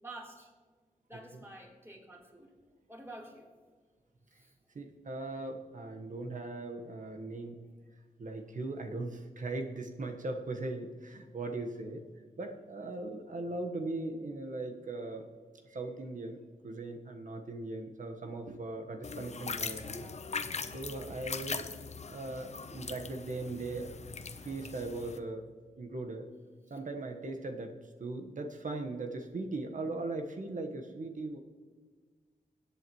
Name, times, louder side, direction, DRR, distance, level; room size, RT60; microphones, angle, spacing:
voice 1, 0.0-0.5 1.1-2.5 2.9-3.5 4.3-4.5, right 1 dB, 15° right, -3 dB, 3.6 m, -48 dB
voice 2, 4.7-7.6 8.2-12.1 12.4-15.3 15.7-16.4 16.6-20.1 20.7-21.7 22.1-25.4 25.8-26.3 26.7-31.4, right 2 dB, 60° right, 4 dB, 1.3 m, -39 dB
sound 1, 19.0-25.2, left 5 dB, 50° left, 0.7 m, -40 dB
21.0 x 8.3 x 3.1 m, 1.5 s
cardioid pair, 60°, 15 cm